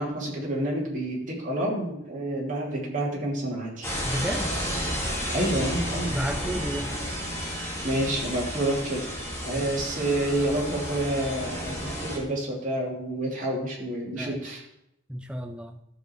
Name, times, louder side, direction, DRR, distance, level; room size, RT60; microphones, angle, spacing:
voice 1, 0.0-3.9 5.3-6.1 7.8-9.1 9.4-14.6, right 1 dB, 40° right, -4 dB, 3.1 m, -28 dB
sound 1, 3.8-12.2, equal, 15° left, 2.0 m, -32 dB
voice 2, 4.0-4.6 6.1-6.9 9.5-9.7 14.1-14.4 15.1-15.8, equal, 5° right, 5 dB, 0.6 m, -32 dB
12.5 x 6.6 x 4.7 m, 0.82 s
head